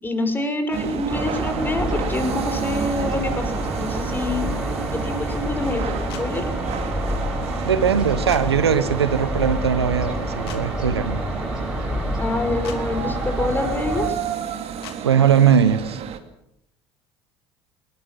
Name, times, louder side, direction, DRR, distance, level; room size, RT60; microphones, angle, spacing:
voice 1, 0.0-4.4 4.9-6.4 12.2-14.2, left 2 dB, 15° left, 7 dB, 5.8 m, -26 dB
sound 1, 0.7-16.2, right 8 dB, 50° right, 2.7 m, -31 dB
sound 2, 1.1-14.1, equal, 5° right, 7.9 m, -28 dB
sound 3, 6.1-6.3 8.3-8.4 10.5-10.6 12.6-12.8 14.8-15.0, left 11 dB, 75° left, 2.9 m, -38 dB
voice 2, 7.6-11.2 15.0-16.0, right 7 dB, 90° right, 13 dB, 1.3 m, -20 dB
21.0 x 20.5 x 7.7 m, 0.77 s
hypercardioid pair, 70°, 13 cm